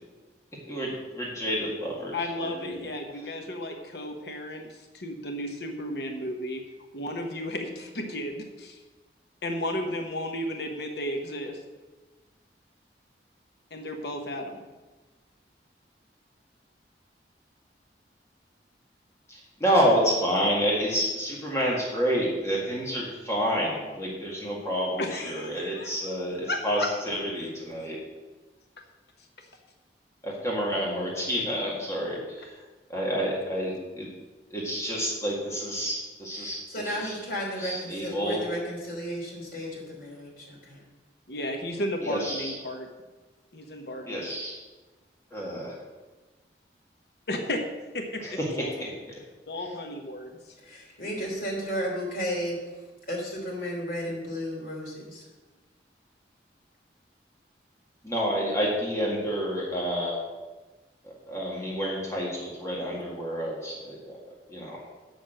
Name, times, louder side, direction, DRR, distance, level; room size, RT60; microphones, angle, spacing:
voice 1, 0.7-2.9 19.3-28.0 30.2-32.5 32.9-34.1 34.5-37.1 37.6-38.4 42.0-42.5 44.1-44.5 45.3-45.7 48.3-48.4 48.8-48.9 58.0-60.2 61.0-64.1 64.5-64.8, equal, 15° left, -4 dB, 1.9 m, -29 dB
voice 2, 2.1-6.6 6.9-8.8 9.4-11.6 13.7-14.6 25.0-25.9 26.5-26.9 41.3-42.9 43.5-44.3 47.3-47.6 47.9-48.7 49.5-50.4, left 1 dB, 65° left, 3 dB, 1.1 m, -33 dB
voice 3, 36.3-40.8 50.6-52.6 53.1-55.2, equal, 50° left, -3 dB, 3.4 m, -33 dB
7.1 x 6.7 x 7.7 m, 1.2 s
head